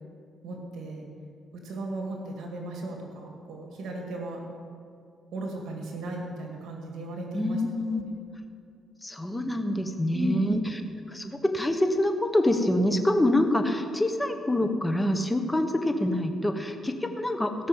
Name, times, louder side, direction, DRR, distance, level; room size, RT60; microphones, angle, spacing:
voice 1, 0.4-1.0 1.5-4.4 5.3-7.6 7.9-8.1 10.1-10.6, right 1 dB, 75° right, 1 dB, 2.2 m, -35 dB
voice 2, 7.3-8.0 9.0-10.8 11.1-17.7, left 1 dB, 10° left, 6 dB, 1.3 m, -26 dB
17.0 x 6.4 x 7.4 m, 2.4 s
cardioid pair, 90°, 0 cm